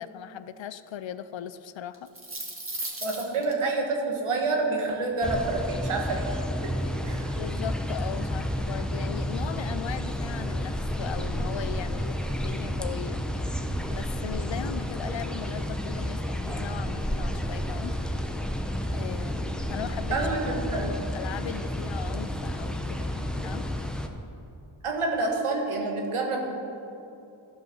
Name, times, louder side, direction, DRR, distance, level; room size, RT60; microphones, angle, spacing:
voice 1, 0.0-2.1 7.3-13.2 13.9-17.9 18.9-20.2 20.7-23.7, left 10 dB, 65° left, 13 dB, 0.6 m, -38 dB
sound 1, 1.9-3.5, right 2 dB, 25° right, 1.9 m, -35 dB
voice 2, 3.0-6.3 6.6-6.8 7.0-7.4 20.1-20.9 24.8-26.6, right 3 dB, 90° right, 1 dB, 1.4 m, -28 dB
sound 2, 5.2-24.1, equal, ahead, 0.8 m, -31 dB
12.5 x 5.5 x 5.9 m, 2.7 s
cardioid pair, 45°, 49 cm